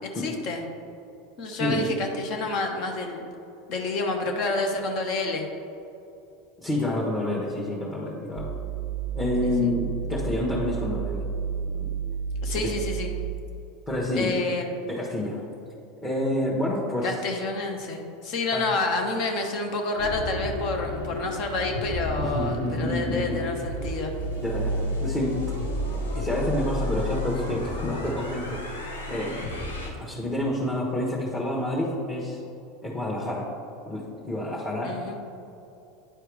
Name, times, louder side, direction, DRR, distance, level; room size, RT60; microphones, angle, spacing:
voice 1, 0.0-0.6 1.4-3.3 3.7-5.4 9.4-9.7 12.4-13.1 14.2-14.8 17.0-24.1 34.8-35.2, left 2 dB, 50° left, 3 dB, 1.0 m, -29 dB
voice 2, 1.6-1.9 6.6-8.5 9.1-11.2 11.8-11.9 12.6-12.7 13.9-14.3 14.9-15.4 16.0-17.1 18.5-18.6 22.2-23.4 24.4-25.6 26.1-28.6 29.1-32.4 32.8-33.5 33.9-34.9, left 1 dB, 20° left, -5 dB, 1.3 m, -28 dB
sound 1, 8.4-13.3, right 7 dB, 40° right, 0.5 m, -31 dB
sound 2, 20.0-29.9, left 1 dB, 85° left, 1.0 m, -31 dB
9.9 x 4.6 x 3.5 m, 2.8 s
figure-of-eight pair, 80°, 0 cm